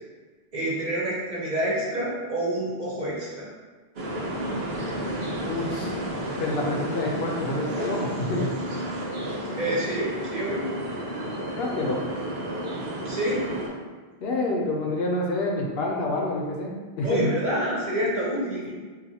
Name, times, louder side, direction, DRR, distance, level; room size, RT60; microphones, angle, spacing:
voice 1, 0.5-3.5 9.5-10.7 13.0-13.5 17.0-18.7, right 1 dB, 45° right, -5 dB, 0.9 m, -27 dB
sound 1, 4.0-13.7, right 1 dB, 75° right, 1.0 m, -31 dB
voice 2, 5.4-6.0 6.4-8.5 11.5-12.1 14.2-17.3, left 2 dB, 70° left, -1 dB, 0.8 m, -28 dB
4.0 x 2.6 x 2.7 m, 1.4 s
omnidirectional pair, 1.1 m